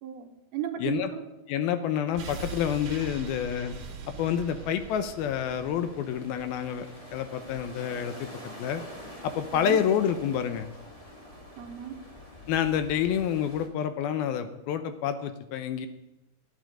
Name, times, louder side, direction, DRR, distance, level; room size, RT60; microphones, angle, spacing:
voice 1, 0.0-1.3 9.5-9.8 11.6-12.0, right 10 dB, 75° right, 6 dB, 2.8 m, -35 dB
voice 2, 1.5-3.8 4.2-8.3 8.6-8.8 9.2-10.7 12.5-15.9, left 9 dB, 75° left, 10 dB, 2.5 m, -28 dB
sound 1, 2.1-7.1 7.4-7.5, right 4 dB, 50° right, 2.7 m, -42 dB
sound 2, 4.3-13.7, left 1 dB, 40° left, 0.4 m, -46 dB
12.5 x 9.2 x 8.8 m, 0.95 s
omnidirectional pair, 4.6 m